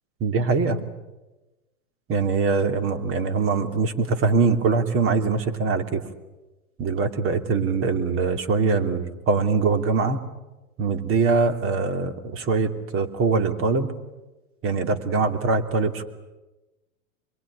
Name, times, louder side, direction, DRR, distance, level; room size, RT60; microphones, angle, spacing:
voice 1, 0.2-0.8 2.1-6.0 6.8-10.2 10.8-13.9 14.6-16.0, right 4 dB, 30° right, 9 dB, 2.8 m, -23 dB
26.5 x 21.5 x 9.9 m, 1.1 s
hypercardioid pair, 120°, 43 cm